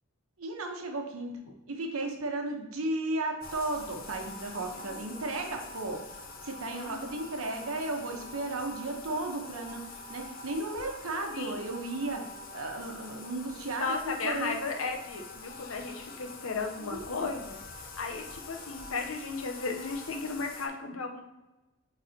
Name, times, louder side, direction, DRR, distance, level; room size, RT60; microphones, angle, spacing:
voice 1, 0.4-1.3 1.7-6.0 6.4-12.2 12.5-14.5 16.8-17.0, right 2 dB, 85° right, 3 dB, 1.1 m, -34 dB
Bathtub (filling or washing), 3.4-20.7, left 3 dB, 45° left, 0.7 m, -45 dB
voice 2, 4.7-5.1 6.7-7.1 11.3-11.7 13.8-21.2, left 4 dB, 75° left, 3 dB, 0.8 m, -35 dB
8.2 x 4.0 x 2.8 m, 1.1 s
head